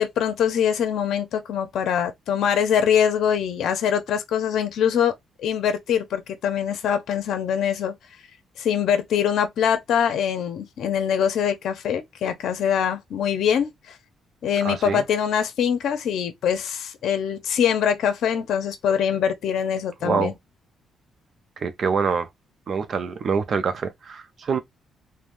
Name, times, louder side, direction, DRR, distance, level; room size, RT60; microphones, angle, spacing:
voice 1, 0.0-5.1 5.4-7.9 8.6-14.0 14.4-20.3, left 8 dB, 75° left, 0.6 m, -23 dB
voice 2, 14.6-15.0 20.0-20.3 21.6-22.3 22.7-24.6, right 5 dB, 50° right, 0.5 m, -25 dB
3.3 x 2.2 x 2.6 m
cardioid pair, 90°, 0 cm